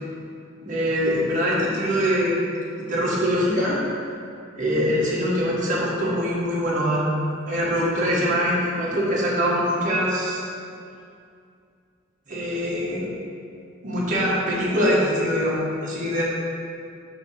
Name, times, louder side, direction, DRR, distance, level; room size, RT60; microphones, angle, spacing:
voice 1, 0.6-2.4 2.9-3.8 4.6-7.1 7.5-10.4 12.3-13.1 13.8-16.2, equal, 40° right, -7 dB, 1.5 m, -23 dB
8.3 x 2.9 x 6.3 m, 2.4 s
head